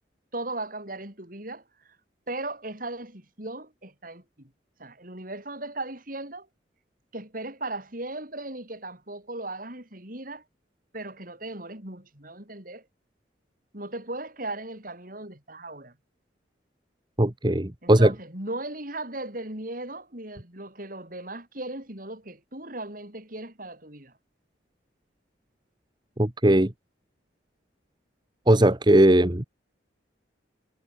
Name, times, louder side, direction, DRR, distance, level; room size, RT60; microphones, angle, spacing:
voice 1, 0.3-2.0 2.3-4.5 4.8-6.5 7.1-10.4 10.9-12.8 13.7-15.9 17.8-24.1, right 2 dB, 45° right, 5.7 m, -37 dB
voice 2, 17.2-18.1 26.2-26.7 28.5-29.4, right 1 dB, 25° right, 1.3 m, -19 dB
head